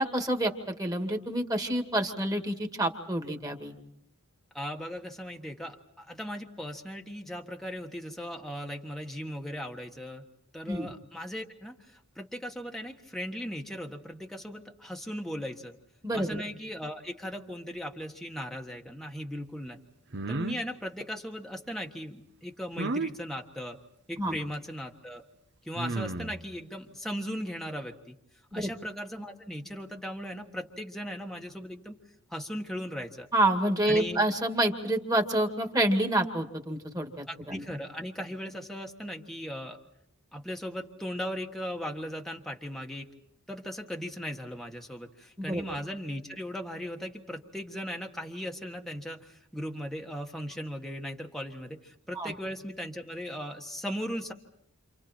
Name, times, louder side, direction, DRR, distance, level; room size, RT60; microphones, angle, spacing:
voice 1, 0.0-3.7 10.7-10.9 16.0-16.4 24.2-24.4 28.5-28.7 33.3-37.6 45.4-45.6 52.2-52.3, right 1 dB, 15° right, 4 dB, 2.2 m, -28 dB
voice 2, 4.5-10.2 10.5-15.8 16.1-19.8 20.3-23.8 24.1-25.2 25.6-28.2 28.5-32.0 32.3-33.3 33.9-34.2 37.3-39.8 40.3-43.1 43.5-54.3, equal, ahead, 2 dB, 1.4 m, -38 dB
sound 1, 20.1-20.6 22.8-23.1 24.5-24.6 25.8-26.4, right 2 dB, 50° right, 1.0 m, -32 dB
29.5 x 27.5 x 4.4 m, 0.72 s
head